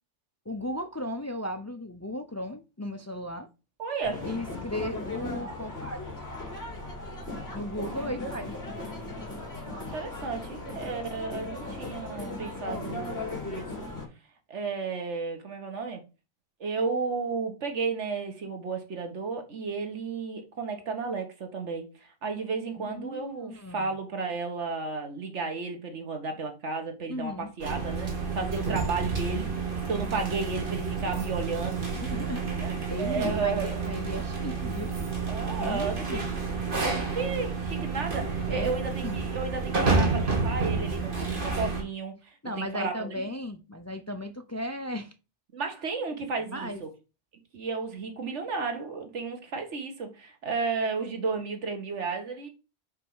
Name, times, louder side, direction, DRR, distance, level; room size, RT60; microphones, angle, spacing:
voice 1, 0.5-3.5 4.2-6.1 7.5-8.5 22.8-24.0 27.1-27.5 32.0-34.9 35.6-36.3 38.5-38.7 39.0-39.2 42.4-45.1 46.5-46.8, left 1 dB, 25° left, 0.3 m, -36 dB
voice 2, 3.8-4.3 8.0-8.1 9.8-13.9 14.5-16.0 16.6-29.5 29.9-31.9 32.6-32.7 33.0-33.8 35.3-36.3 36.8-43.1 45.5-46.9 47.5-52.5, right 4 dB, 75° right, 1.6 m, -33 dB
sound 1, 4.0-14.0, left 2 dB, 60° left, 2.6 m, -37 dB
sound 2, 27.6-41.8, right 4 dB, 50° right, 1.8 m, -30 dB
5.4 x 4.5 x 5.5 m
omnidirectional pair, 1.2 m